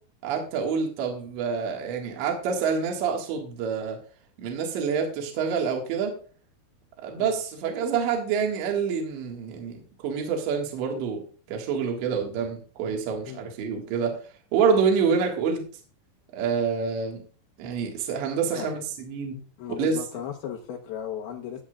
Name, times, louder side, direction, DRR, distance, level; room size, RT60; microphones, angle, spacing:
voice 1, 0.2-4.0 4.4-6.2 7.0-14.2 14.5-15.6 16.3-17.2 17.6-19.4 19.8-19.9, right 6 dB, 65° right, 1 dB, 3.8 m, -27 dB
voice 2, 19.6-21.6, left 9 dB, 75° left, 0 dB, 2.3 m, -36 dB
16.5 x 8.6 x 2.5 m, 0.40 s
omnidirectional pair, 5.9 m